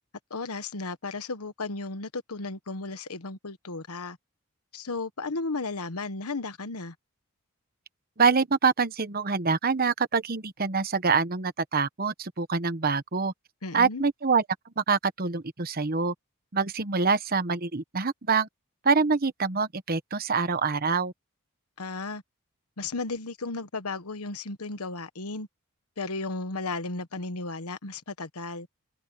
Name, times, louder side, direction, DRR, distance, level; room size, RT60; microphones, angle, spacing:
voice 1, 0.3-4.2 4.7-6.9 13.6-14.0 21.8-22.2 22.8-25.5 26.0-28.7, left 3 dB, 90° left, 1.3 m, -34 dB
voice 2, 8.2-13.3 13.7-14.4 14.8-16.1 16.5-18.5 18.8-21.1, right 4 dB, 45° right, 1.0 m, -25 dB
head